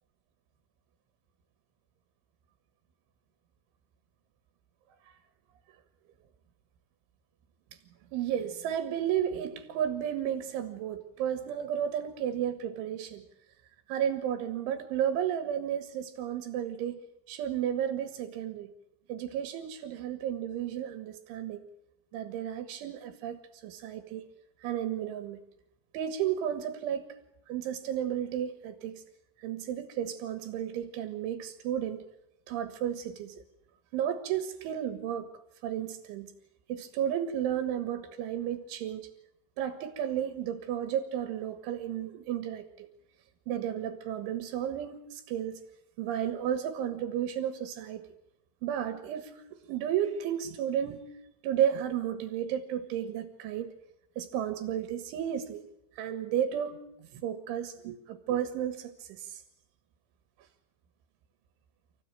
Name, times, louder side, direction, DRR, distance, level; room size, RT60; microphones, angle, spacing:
voice 1, 8.1-13.2 13.9-17.0 17.3-18.7 19.1-21.6 22.1-24.3 24.6-25.4 25.9-27.2 27.5-29.0 29.4-32.0 32.5-33.4 33.9-35.3 35.6-36.3 36.7-39.1 39.6-42.9 43.5-45.6 46.0-48.0 48.6-49.4 49.7-51.0 51.4-53.7 54.2-55.6 55.9-59.4, right 10 dB, 80° right, 9 dB, 4.0 m, -33 dB
29.0 x 17.0 x 9.0 m, 0.85 s
omnidirectional pair, 5.5 m